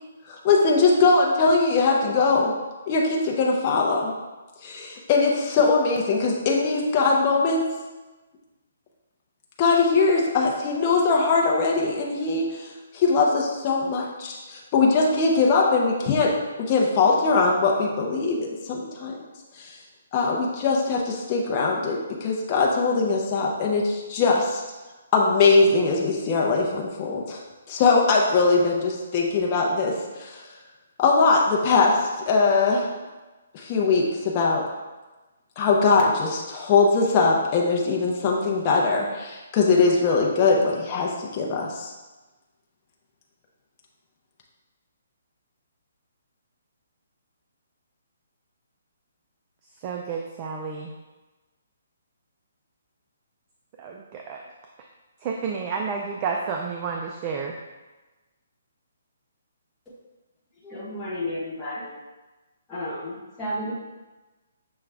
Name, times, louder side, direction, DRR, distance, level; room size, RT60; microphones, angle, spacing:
voice 1, 0.3-2.5 2.9-4.1 4.6-7.7 9.6-16.3 16.7-19.2 19.6-19.7 20.1-24.6 25.1-27.4 27.7-30.4 31.0-32.9 33.5-34.6 35.6-41.9, left 4 dB, 30° left, -2 dB, 0.6 m, -21 dB
voice 2, 49.8-50.8 53.8-54.4 55.2-57.5, right 5 dB, 25° right, 0 dB, 0.3 m, -30 dB
voice 3, 60.6-62.0 62.7-63.7, left 1 dB, 10° left, -9 dB, 1.0 m, -32 dB
6.2 x 2.3 x 3.3 m, 1.1 s
hypercardioid pair, 160°, 0 cm